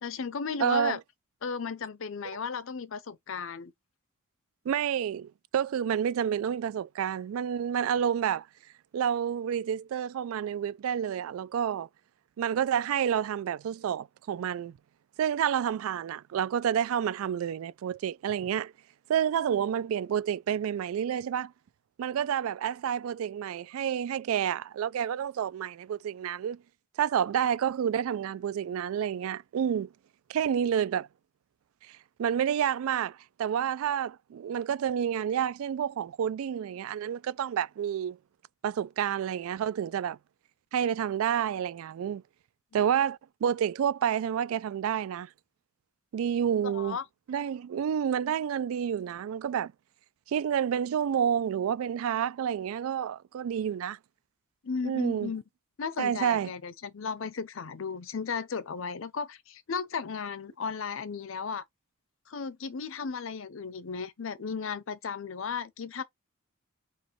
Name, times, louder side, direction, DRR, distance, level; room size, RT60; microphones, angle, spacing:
voice 1, 0.0-1.0 1.4-3.7 42.7-42.8 46.6-47.0 54.6-55.4 55.8-61.6 62.3-66.0, left 5 dB, 65° left, 0.5 m, -35 dB
voice 2, 0.6-1.0 4.7-8.5 8.9-11.9 12.4-14.8 15.2-18.7 19.1-21.5 22.0-26.6 27.0-29.9 30.3-31.1 31.9-38.2 38.6-40.2 40.7-42.2 42.7-45.3 46.1-47.0 47.3-49.7 50.3-54.0 54.8-55.3 56.0-56.5, right 8 dB, 75° right, 0.3 m, -29 dB
4.3 x 3.0 x 3.0 m
head